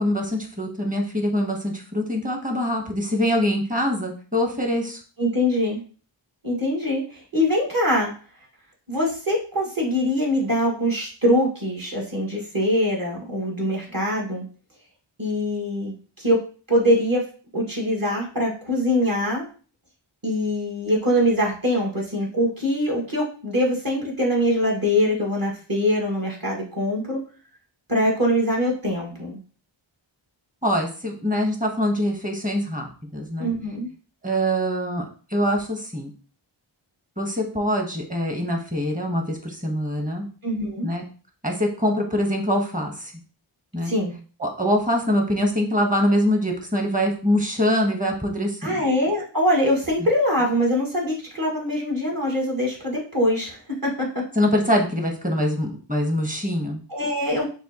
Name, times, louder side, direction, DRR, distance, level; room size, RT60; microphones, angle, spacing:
voice 1, 0.0-5.0 30.6-33.5 34.2-36.1 37.2-40.3 40.8-41.0 41.4-43.1 43.7-43.9 44.4-48.8 54.3-56.8, equal, 15° right, 1 dB, 1.2 m, -24 dB
voice 2, 5.2-5.8 6.4-8.1 8.9-14.4 15.2-16.4 16.7-17.2 17.5-19.5 20.2-27.2 27.9-29.4 33.4-33.9 40.4-40.9 43.8-44.1 48.6-54.2 56.9-57.4, equal, 45° right, -3 dB, 2.0 m, -23 dB
6.1 x 2.6 x 3.0 m, 0.38 s
wide cardioid pair, 45°, 49 cm